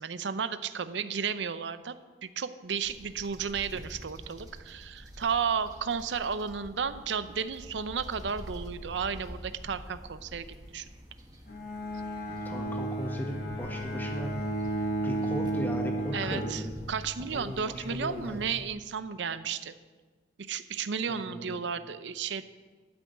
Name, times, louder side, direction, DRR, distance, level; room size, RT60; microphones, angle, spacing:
voice 1, 0.0-2.0 2.2-10.9 16.1-16.6 16.9-19.7 20.5-22.4, right 6 dB, 75° right, 12 dB, 0.6 m, -33 dB
sound 1, 2.8-18.7, equal, 20° right, 1.8 m, -48 dB
Bowed string instrument, 11.5-17.3, right 1 dB, 55° left, 1.5 m, -33 dB
voice 2, 12.4-14.5 14.8-16.8 17.2-18.4 21.1-21.5, equal, 10° left, 1 dB, 1.5 m, -37 dB
12.5 x 6.2 x 8.1 m, 1.4 s
head